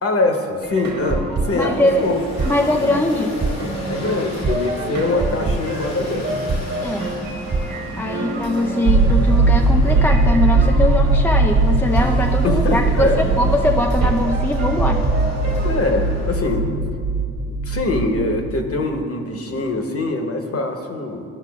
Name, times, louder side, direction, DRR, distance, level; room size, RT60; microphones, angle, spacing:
voice 1, 0.0-2.2 2.7-2.9 3.9-6.4 12.4-13.2 15.6-16.9 17.5-21.2, left 2 dB, 35° left, 4 dB, 1.1 m, -23 dB
sound 1, 0.6-15.8, right 2 dB, 40° right, 1.4 m, -27 dB
sound 2, 1.5-16.5, left 1 dB, 85° left, 1.8 m, -36 dB
voice 2, 1.5-2.0 2.4-3.3 6.8-7.1 8.0-15.0, left 1 dB, 5° left, 2 dB, 0.4 m, -21 dB
sound 3, 8.9-18.7, right 2 dB, 65° right, 1.2 m, -19 dB
14.0 x 5.5 x 2.4 m, 2.4 s
supercardioid pair, 70°, 39 cm